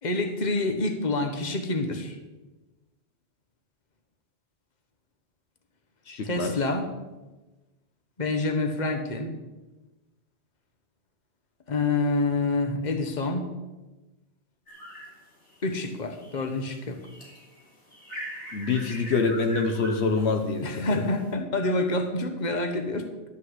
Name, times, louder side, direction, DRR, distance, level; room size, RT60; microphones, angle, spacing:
voice 1, 0.0-2.2 6.2-6.9 8.2-9.3 11.7-13.5 15.6-17.0 20.6-23.1, left 2 dB, 40° left, 6 dB, 1.3 m, -27 dB
voice 2, 6.1-6.5 18.5-21.1, left 4 dB, 70° left, 6 dB, 1.2 m, -26 dB
sound 1, 14.7-15.8 16.2-21.3, equal, 90° left, 3.9 m, -42 dB
12.0 x 5.5 x 8.0 m, 1.1 s
omnidirectional pair, 1.2 m